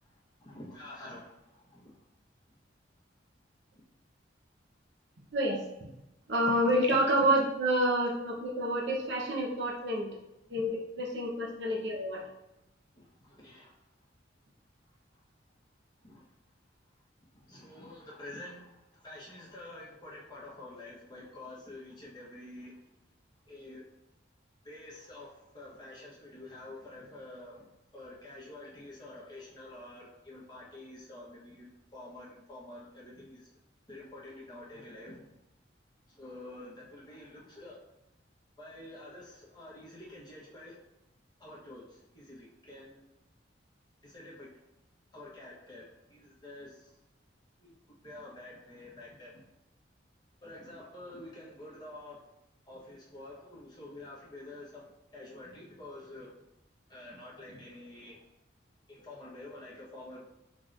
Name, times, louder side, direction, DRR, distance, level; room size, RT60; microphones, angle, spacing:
voice 1, 0.4-2.0 12.9-13.7 16.0-16.2 17.3-22.8 23.5-23.8 24.6-27.7 27.9-33.5 33.9-35.3 36.2-37.8 38.6-40.8 41.4-43.0 44.0-44.5 45.1-46.9 47.6-47.7 48.0-49.4 50.4-52.2 52.7-54.9 55.1-56.3 56.9-58.2 58.9-60.2, left 1 dB, 25° left, -6 dB, 1.2 m, -48 dB
voice 2, 5.3-5.9 6.3-10.1 10.5-12.3, right 1 dB, 65° right, -1 dB, 1.0 m, -28 dB
5.5 x 3.3 x 2.6 m, 0.91 s
head